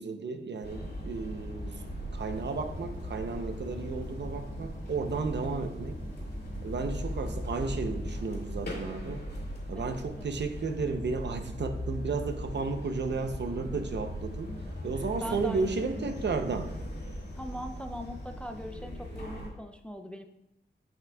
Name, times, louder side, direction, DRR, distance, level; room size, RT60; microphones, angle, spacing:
voice 1, 0.0-1.8 2.1-6.0 6.6-9.2 9.7-14.5 14.8-16.7, right 4 dB, 65° right, 7 dB, 0.6 m, -33 dB
sound 1, 0.6-19.5, equal, 55° left, 2.1 m, -38 dB
Engine, 2.1-7.9, left 1 dB, 85° left, 2.1 m, -55 dB
voice 2, 9.7-10.4 15.2-15.7 16.0-16.2 17.3-20.3, equal, 5° left, 7 dB, 0.4 m, -41 dB
8.8 x 5.9 x 2.3 m, 0.88 s
wide cardioid pair, 130°, 20 cm